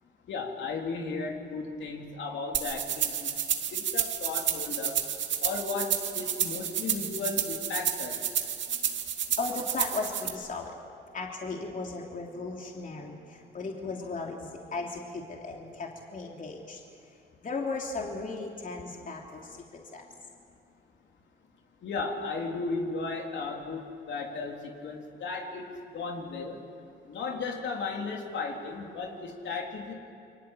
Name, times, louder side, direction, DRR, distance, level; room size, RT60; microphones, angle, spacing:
voice 1, 0.3-3.4 3.7-5.0 5.4-8.4 21.8-26.6 27.1-29.9, left 4 dB, 65° left, 1 dB, 3.7 m, -35 dB
sound 1, 2.5-10.3, right 9 dB, 65° right, 2.3 m, -30 dB
voice 2, 9.4-10.8 11.1-16.8 17.4-20.0, left 3 dB, 40° left, 0 dB, 3.1 m, -36 dB
29.0 x 24.0 x 8.4 m, 2.6 s
cardioid pair, 90°, 20 cm